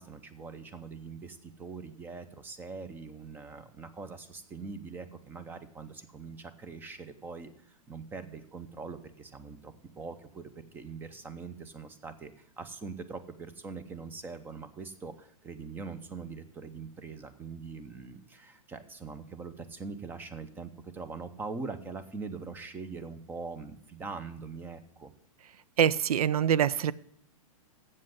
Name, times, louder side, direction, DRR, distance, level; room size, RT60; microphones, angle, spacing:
voice 1, 0.0-25.1, right 4 dB, 10° right, 12 dB, 0.6 m, -42 dB
voice 2, 25.8-26.9, right 9 dB, 90° right, 18 dB, 0.5 m, -24 dB
7.6 x 7.5 x 7.7 m, 0.70 s
hypercardioid pair, 155°, 18 cm